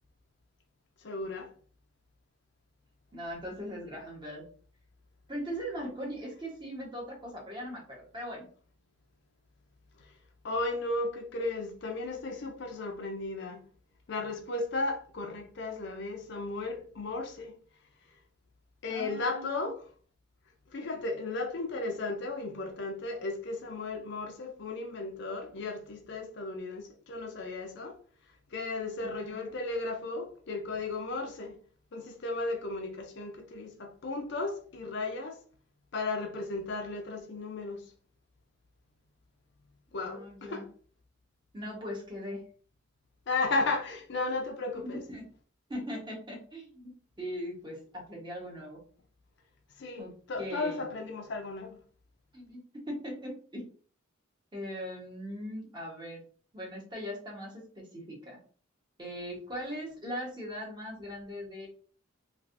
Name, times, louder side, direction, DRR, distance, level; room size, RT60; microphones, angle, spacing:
voice 1, 1.0-1.5 10.4-13.6 14.1-17.6 18.8-19.9 20.7-28.0 28.5-31.6 31.9-35.4 35.9-37.8 39.9-40.7 43.3-45.0 49.8-51.8, left 3 dB, 60° left, 0.5 m, -35 dB
voice 2, 3.1-4.5 5.3-8.5 18.9-19.7 29.0-29.5 40.0-40.6 41.5-42.4 44.8-45.2 45.7-46.9 47.2-48.8 50.0-50.1 50.4-50.9 52.3-52.6 52.9-53.7 54.5-56.2 56.5-58.4 59.0-61.7, equal, 25° right, 1.0 m, -40 dB
3.2 x 2.5 x 2.5 m
head